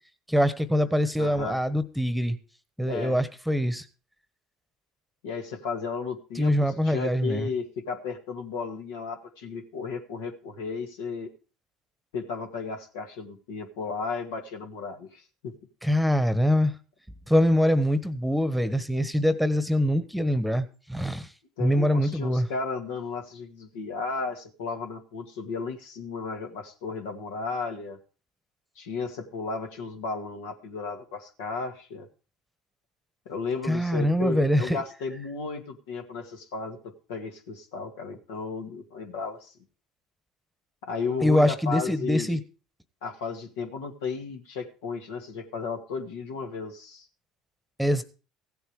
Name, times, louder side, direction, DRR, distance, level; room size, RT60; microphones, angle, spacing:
voice 1, 0.3-2.4 2.8-3.8 6.4-7.5 15.8-16.7 17.3-21.3 21.6-22.5 33.7-34.8 41.2-42.4 47.8-48.0, equal, ahead, 13 dB, 1.2 m, -24 dB
voice 2, 1.2-1.6 2.8-3.2 5.2-11.3 12.1-15.5 21.6-28.0 28.8-32.1 33.3-39.5 40.8-42.4 43.0-47.1, left 4 dB, 80° left, 4 dB, 2.0 m, -34 dB
15.5 x 8.1 x 4.8 m, 0.36 s
hypercardioid pair, 80°, 0 cm